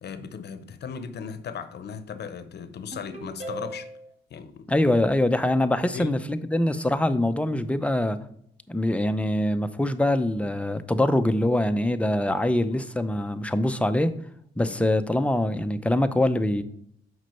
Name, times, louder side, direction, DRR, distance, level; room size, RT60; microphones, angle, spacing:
voice 1, 0.0-3.9 4.3-4.9 5.9-6.2 14.7-14.8, left 6 dB, 55° left, 0.8 m, -37 dB
Ringtone, 2.9-4.1, right 1 dB, 35° right, 2.1 m, -37 dB
voice 2, 4.7-8.2 8.7-14.1 14.6-16.6, left 1 dB, 5° left, 0.6 m, -24 dB
6.2 x 5.3 x 5.6 m
cardioid pair, 90°, 20 cm